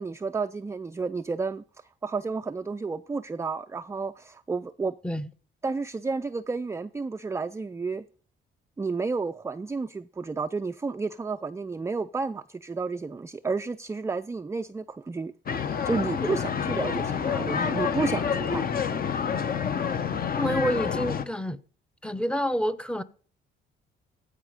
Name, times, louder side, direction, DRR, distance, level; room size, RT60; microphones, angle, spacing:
voice 1, 0.0-1.6 2.0-4.9 5.6-8.0 8.8-15.3 15.8-18.7, right 4 dB, 15° right, 0.4 m, -31 dB
sound 1, 15.5-21.2, left 7 dB, 45° left, 1.0 m, -28 dB
voice 2, 20.3-21.6 22.0-23.0, equal, 5° left, 0.7 m, -28 dB
15.0 x 5.0 x 5.0 m
cardioid pair, 90°, 20 cm